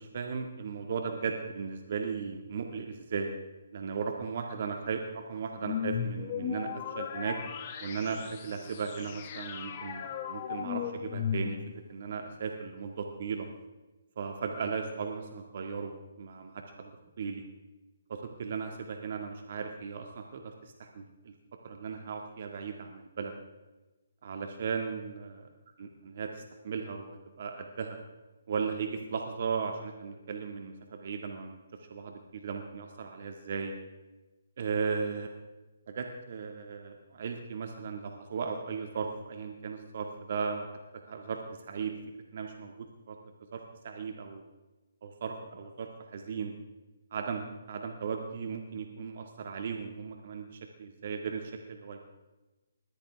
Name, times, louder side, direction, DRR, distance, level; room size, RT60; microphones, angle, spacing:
voice 1, 0.0-3.3 3.7-7.4 7.8-11.6 11.9-13.5 14.2-15.9 16.2-16.9 17.2-17.4 18.1-21.3 21.6-23.3 24.2-25.5 25.8-28.0 28.5-31.6 31.9-33.7 34.6-35.3 35.9-40.7 40.9-41.9 42.3-43.2 43.5-44.4 45.0-46.5 47.1-52.1, right 5 dB, 55° right, 4 dB, 1.8 m, -36 dB
sound 1, 5.6-11.9, left 8 dB, 35° left, 1.5 m, -36 dB
21.0 x 15.5 x 3.4 m, 1.1 s
hypercardioid pair, 150°, 0 cm